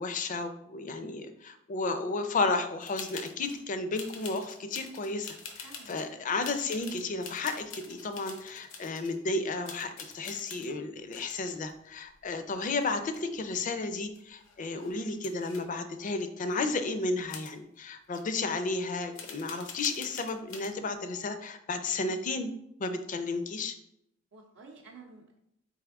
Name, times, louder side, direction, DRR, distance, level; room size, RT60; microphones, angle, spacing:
voice 1, 0.0-22.5 22.8-23.7, left 3 dB, 40° left, 9 dB, 0.4 m, -33 dB
sound 1, 2.8-3.6 3.9-6.1 6.4-9.2 9.7-10.7 11.1-12.6 12.8-13.6 13.9-14.0 14.1-15.6 16.5-16.6 17.3-17.5 18.1-18.2 19.1-20.7, left 5 dB, 85° left, 0.7 m, -46 dB
voice 2, 5.6-6.3 24.3-25.4, right 3 dB, 65° right, -1 dB, 0.6 m, -52 dB
4.2 x 3.5 x 3.4 m, 0.77 s
head